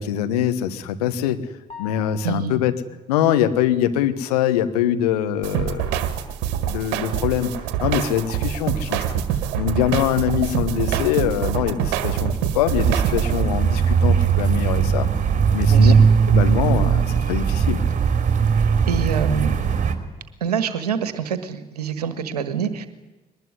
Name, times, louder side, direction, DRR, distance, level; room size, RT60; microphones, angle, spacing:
voice 1, 0.0-1.5 1.8-2.7 3.1-6.0 6.7-7.5 7.8-9.2 9.5-15.1 15.5-15.9 16.3-17.8, left 10 dB, 75° left, 9 dB, 1.4 m, -23 dB
sound 1, 1.7-2.8, left 7 dB, 30° left, 6.5 m, -41 dB
voice 2, 2.2-2.6 15.7-16.0 18.5-19.5 20.4-22.9, right 7 dB, 85° right, 12 dB, 1.5 m, -26 dB
sound 2, 5.4-13.4, right 9 dB, 70° right, 1.7 m, -25 dB
sound 3, 12.7-19.9, right 6 dB, 40° right, 3.2 m, -19 dB
22.0 x 20.0 x 9.8 m, 1.1 s
figure-of-eight pair, 45°, 20 cm